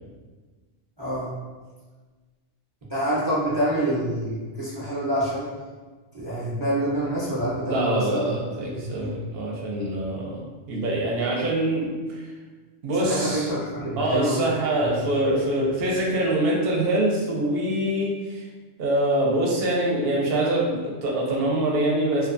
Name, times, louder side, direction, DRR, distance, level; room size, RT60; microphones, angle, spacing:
voice 1, 1.0-1.4 2.9-5.5 6.1-8.4 8.7-9.1 13.0-14.4, right 1 dB, 30° right, -10 dB, 0.5 m, -27 dB
voice 2, 7.6-12.3 12.8-13.5 14.0-18.5 18.8-22.3, right 1 dB, 60° right, -3 dB, 0.8 m, -24 dB
2.6 x 2.3 x 2.5 m, 1.3 s
omnidirectional pair, 1.2 m